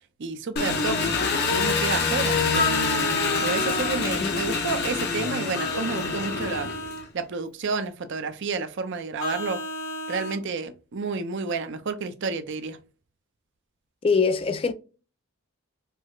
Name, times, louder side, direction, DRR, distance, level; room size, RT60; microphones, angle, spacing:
voice 1, 0.2-2.9 3.4-6.7 7.1-9.6 10.1-12.8, right 4 dB, 55° right, 0.5 m, -30 dB
Engine, 0.6-7.1, left 4 dB, 50° left, 0.7 m, -26 dB
Vehicle horn car horn honking, 2.5-4.1 5.5-7.0 9.2-10.4, left 2 dB, 75° left, 1.1 m, -30 dB
voice 2, 4.0-4.3 14.0-14.7, left 4 dB, 25° left, 0.3 m, -23 dB
4.5 x 2.1 x 2.3 m
head